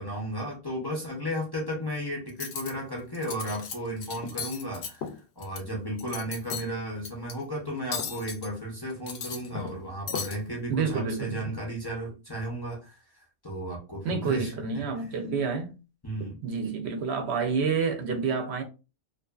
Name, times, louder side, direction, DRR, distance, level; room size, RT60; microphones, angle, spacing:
voice 1, 0.0-5.0 5.4-14.9 16.0-16.4, equal, 30° left, 0.4 m, -34 dB
Cutlery silverware, 2.3-2.7 3.1-3.7 4.0-5.6 6.0-6.7 7.0-7.3 7.9-8.5 8.9-9.8 10.1-10.4, left 6 dB, 65° left, 0.7 m, -35 dB
voice 2, 9.5-9.8 10.7-11.6 14.0-15.7 16.2-18.6, right 5 dB, 60° right, 0.8 m, -29 dB
2.6 x 2.4 x 2.3 m
omnidirectional pair, 1.4 m